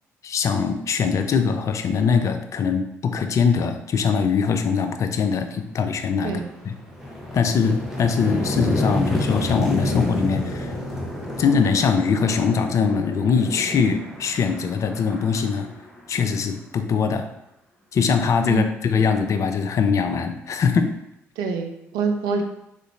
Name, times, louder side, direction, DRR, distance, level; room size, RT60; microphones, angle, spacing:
voice 1, 0.2-6.7 7.3-10.7 11.4-15.7 16.1-17.3 17.9-20.9, left 5 dB, 50° left, 7 dB, 0.4 m, -22 dB
sound 1, 5.9-16.6, left 1 dB, 5° right, 1.0 m, -30 dB
voice 2, 21.4-22.4, right 4 dB, 70° right, 4 dB, 0.5 m, -26 dB
3.8 x 2.5 x 3.2 m, 0.82 s
hypercardioid pair, 50°, 7 cm